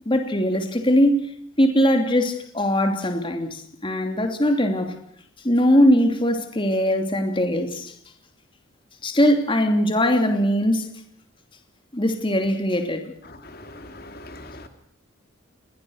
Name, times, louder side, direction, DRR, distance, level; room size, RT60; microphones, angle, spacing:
voice 1, 0.1-1.2 1.6-4.9 5.4-7.9 9.0-10.9 11.9-13.1, equal, 25° left, 5 dB, 2.7 m, -20 dB
voice 2, 13.3-14.7, left 1 dB, 50° left, 7 dB, 2.6 m, -41 dB
29.5 x 21.5 x 6.4 m, 0.63 s
head